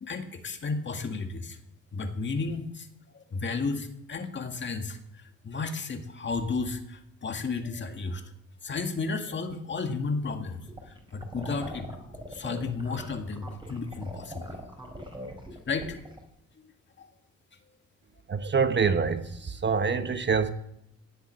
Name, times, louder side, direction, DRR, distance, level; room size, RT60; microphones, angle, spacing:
voice 1, 0.0-1.6 1.9-2.9 3.1-5.0 5.4-8.2 8.6-11.9 12.3-14.5 15.7-16.0 16.6-16.7 17.0-17.1, left 4 dB, 40° left, 6 dB, 2.0 m, -33 dB
sound 1, 10.6-16.2, equal, 15° right, 4.3 m, -41 dB
voice 2, 18.3-20.5, right 5 dB, 35° right, 9 dB, 1.2 m, -26 dB
18.0 x 8.0 x 6.5 m, 0.78 s
cardioid pair, 90°, 30 cm